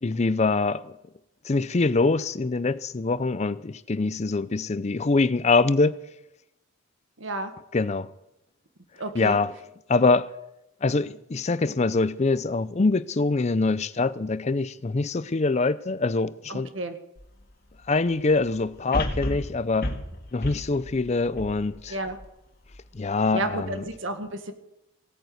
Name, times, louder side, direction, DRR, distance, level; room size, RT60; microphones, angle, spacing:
voice 1, 0.0-0.9 1.5-6.0 7.7-8.1 9.1-9.5 9.9-10.3 10.8-16.7 17.9-19.9 20.3-22.0 22.9-23.8, left 3 dB, 35° left, 0.5 m, -24 dB
voice 2, 7.2-7.5 9.0-9.4 16.5-17.0 21.9-22.2 23.3-24.5, right 2 dB, 70° right, 1.7 m, -31 dB
sound 1, 17.2-17.3 18.9-22.2 22.7-22.8, left 1 dB, 50° left, 2.0 m, -32 dB
17.0 x 9.1 x 7.9 m
head